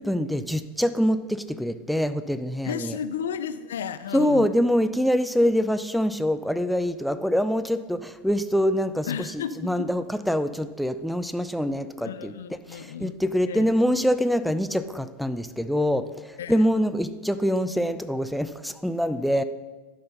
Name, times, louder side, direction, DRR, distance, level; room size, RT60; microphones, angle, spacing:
voice 1, 0.0-3.0 4.1-12.3 12.7-16.1 16.5-19.4, equal, ahead, 11 dB, 0.5 m, -25 dB
voice 2, 2.6-4.5 9.1-9.9 12.0-13.2 13.5-13.7 16.4-16.5, left 8 dB, 75° left, 13 dB, 0.5 m, -33 dB
11.5 x 5.5 x 5.5 m, 1.2 s
hypercardioid pair, 90°, 0 cm